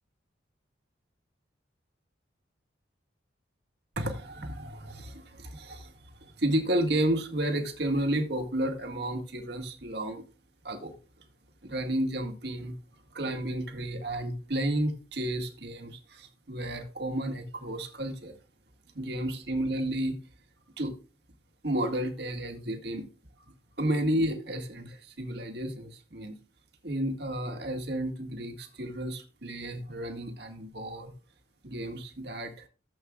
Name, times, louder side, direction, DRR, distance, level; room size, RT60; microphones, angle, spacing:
voice 1, 4.0-10.2 10.6-11.0 11.6-12.8 13.1-18.4 18.9-20.2 20.8-21.0 21.6-23.1 23.8-26.3 26.8-31.1 31.6-32.6, right 1 dB, 55° right, 4 dB, 1.8 m, -32 dB
15.5 x 7.9 x 2.3 m, 0.33 s
head